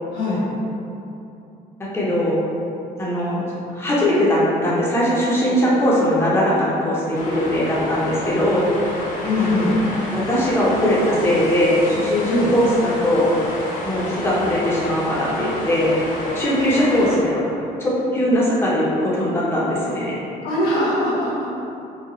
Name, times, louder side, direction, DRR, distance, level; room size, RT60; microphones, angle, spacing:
voice 1, 1.9-2.4 3.0-3.4 3.7-8.7 9.4-9.7 10.1-13.3 13.8-16.0 16.3-17.4 17.8-20.2, left 1 dB, 15° left, -8 dB, 0.9 m, -20 dB
sound 1, 7.1-17.2, left 1 dB, 50° left, 1.0 m, -31 dB
voice 2, 9.2-9.8 12.3-12.5 20.4-21.5, left 1 dB, 85° left, -8 dB, 1.5 m, -21 dB
4.6 x 2.4 x 3.1 m, 2.8 s
cardioid pair, 110°, 17 cm